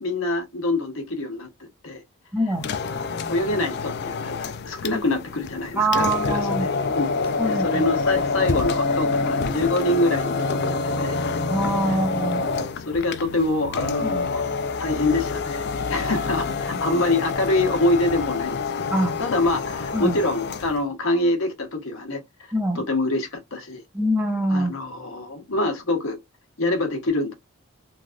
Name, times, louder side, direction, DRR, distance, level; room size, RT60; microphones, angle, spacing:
voice 1, 0.0-2.0 2.8-11.2 11.9-12.0 12.6-14.4 14.8-23.8 24.5-26.2 26.6-27.3, left 2 dB, 70° left, 1.0 m, -26 dB
voice 2, 2.3-2.7 4.9-5.0 5.7-6.7 7.4-7.8 11.5-12.4 14.0-14.2 18.9-19.2 19.9-20.2 22.5-22.8 23.9-24.7, right 1 dB, 10° right, 0.7 m, -24 dB
sound 1, 2.5-20.8, left 4 dB, 50° left, 0.4 m, -27 dB
3.2 x 2.5 x 2.3 m
head